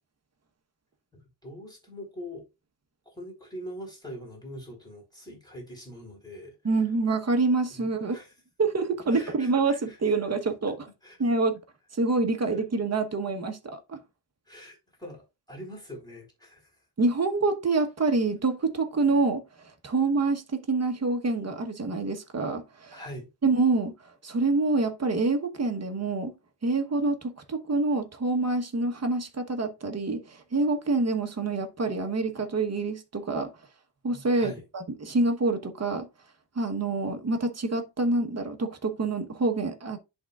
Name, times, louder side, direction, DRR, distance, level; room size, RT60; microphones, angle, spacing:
voice 1, 1.1-2.4 3.1-6.5 7.7-8.3 9.1-10.0 11.0-11.2 12.5-12.6 14.5-16.7 22.9-23.3 34.3-34.6, equal, 10° left, 4.0 m, -43 dB
voice 2, 6.6-8.2 8.6-10.8 11.2-11.6 11.9-14.0 17.0-19.4 19.8-23.0 23.4-23.9 24.2-26.3 26.6-33.5 34.0-36.1 36.5-40.0, right 3 dB, 35° right, 1.2 m, -26 dB
11.0 x 3.8 x 2.4 m
cardioid pair, 90°, 43 cm